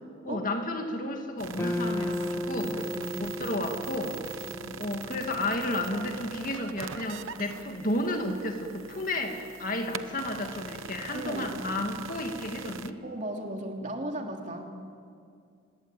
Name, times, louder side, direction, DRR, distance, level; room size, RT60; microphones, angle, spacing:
voice 1, 0.2-2.9 3.2-4.2 4.8-13.0, left 1 dB, 40° left, 4 dB, 2.2 m, -32 dB
sound 1, 1.4-12.9, right 6 dB, 70° right, 0.9 m, -42 dB
sound 2, 1.6-5.9, left 1 dB, 10° left, 0.9 m, -35 dB
voice 2, 2.6-3.2 4.4-4.7 11.1-11.6 13.0-14.7, right 1 dB, 35° right, 2 dB, 3.0 m, -36 dB
26.0 x 20.0 x 9.2 m, 2.4 s
head